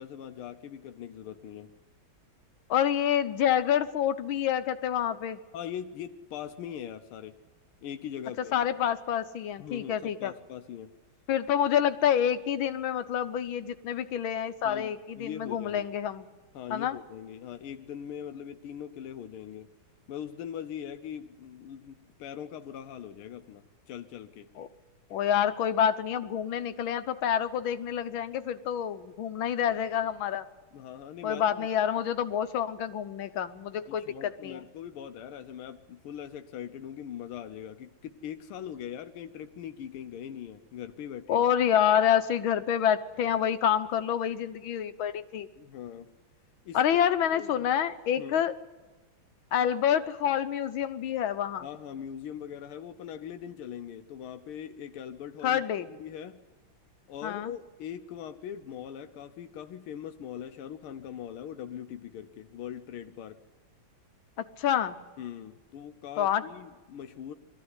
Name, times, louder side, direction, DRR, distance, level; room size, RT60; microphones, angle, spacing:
voice 1, 0.0-1.7 5.5-7.4 7.8-8.7 9.6-10.9 14.6-15.9 16.5-19.7 20.1-24.5 30.7-31.7 33.9-41.4 45.6-46.1 46.6-47.0 47.3-47.7 48.2-48.4 51.6-56.4 57.1-63.4 65.2-67.4, left 9 dB, 90° left, 8 dB, 1.7 m, -41 dB
voice 2, 2.7-5.4 8.5-10.3 11.3-16.3 16.7-17.0 24.6-24.7 25.1-30.4 31.2-34.6 41.3-45.5 46.7-48.5 49.5-51.7 55.4-55.9 57.2-57.5 64.4-65.0 66.2-66.4, left 9 dB, 75° left, 10 dB, 1.7 m, -27 dB
22.0 x 14.0 x 9.8 m, 1.3 s
omnidirectional pair, 2.3 m